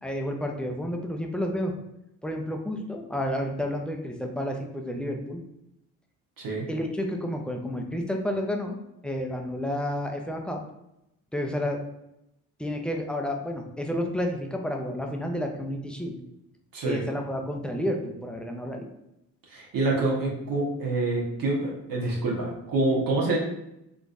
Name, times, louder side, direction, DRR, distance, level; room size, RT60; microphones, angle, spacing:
voice 1, 0.0-1.7 2.2-5.4 6.7-8.8 9.0-10.6 11.3-11.8 12.6-16.1 16.8-18.9, equal, ahead, 2 dB, 0.4 m, -30 dB
voice 2, 6.4-6.7 16.7-17.0 19.5-23.4, right 2 dB, 50° right, -3 dB, 1.1 m, -26 dB
3.7 x 2.5 x 2.4 m, 0.85 s
hypercardioid pair, 50°, 43 cm